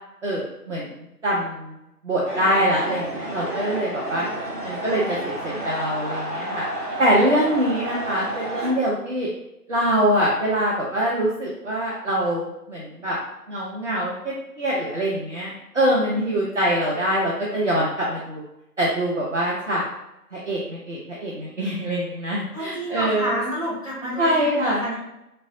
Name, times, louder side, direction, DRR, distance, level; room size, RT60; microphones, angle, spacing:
voice 1, 0.2-1.8 2.0-4.3 4.6-6.7 7.0-9.3 9.7-13.2 13.5-18.4 18.8-19.8 20.3-23.5 24.2-24.8, equal, 50° right, -4 dB, 0.6 m, -24 dB
sound 1, 2.3-8.7, right 1 dB, 90° right, 1.1 m, -31 dB
voice 2, 22.5-24.9, equal, 25° right, -11 dB, 1.5 m, -29 dB
3.8 x 2.1 x 2.5 m, 0.88 s
figure-of-eight pair, 155°, 47 cm